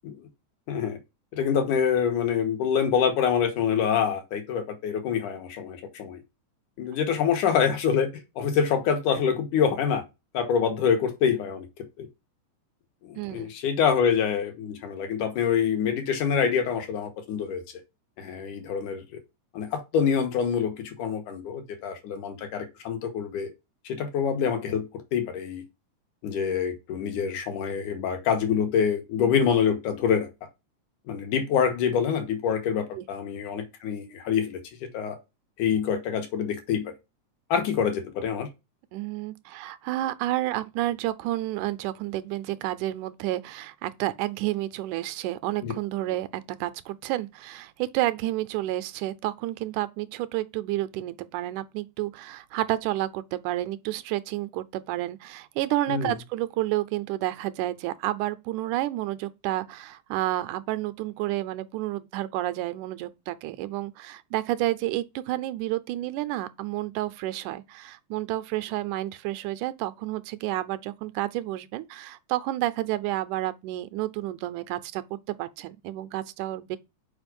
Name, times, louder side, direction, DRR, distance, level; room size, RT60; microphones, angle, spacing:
voice 1, 0.7-1.0 1.3-6.2 6.8-8.1 8.4-10.0 10.3-11.7 12.0-12.1 13.0-17.6 18.2-19.0 19.5-23.5 23.9-25.6 26.2-30.3 31.1-34.6 34.9-35.2 35.6-36.9 37.5-38.5 45.6-45.7 55.9-56.1, left 7 dB, 85° left, 2.8 m, -26 dB
voice 2, 13.2-13.5 32.9-33.1 38.9-76.8, right 15 dB, 85° right, 2.1 m, -30 dB
5.7 x 4.8 x 5.2 m
omnidirectional pair, 3.5 m